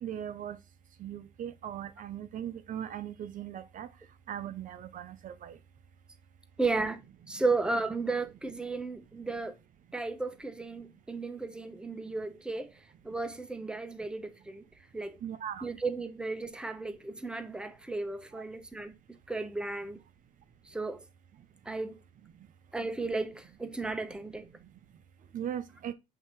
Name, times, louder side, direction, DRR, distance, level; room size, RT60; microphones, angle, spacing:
voice 1, 0.0-0.6 1.0-3.9 4.3-5.6 15.2-15.7 18.3-18.4 25.3-25.9, right 10 dB, 50° right, 0.6 m, -39 dB
voice 2, 6.6-9.6 9.9-14.7 14.9-15.2 15.6-18.9 19.3-20.0 20.7-21.1 21.6-22.0 22.7-24.5, right 3 dB, 5° right, 0.7 m, -34 dB
7.8 x 2.8 x 4.4 m
cardioid pair, 110°, 17 cm